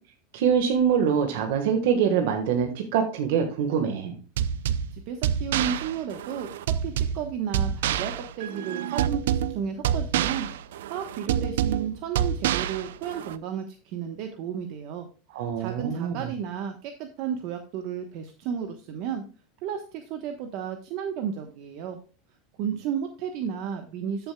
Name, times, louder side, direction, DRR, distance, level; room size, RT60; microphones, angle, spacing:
voice 1, 0.3-4.1 15.3-16.3, right 7 dB, 70° right, 4 dB, 1.5 m, -24 dB
sound 1, 4.4-13.4, right 9 dB, 90° right, 0.5 m, -28 dB
voice 2, 4.9-10.5 10.9-15.1 15.6-19.2 19.6-22.0 22.6-24.3, right 8 dB, 55° right, 5 dB, 1.1 m, -33 dB
13.5 x 7.0 x 2.3 m, 0.36 s
supercardioid pair, 145°, 0 cm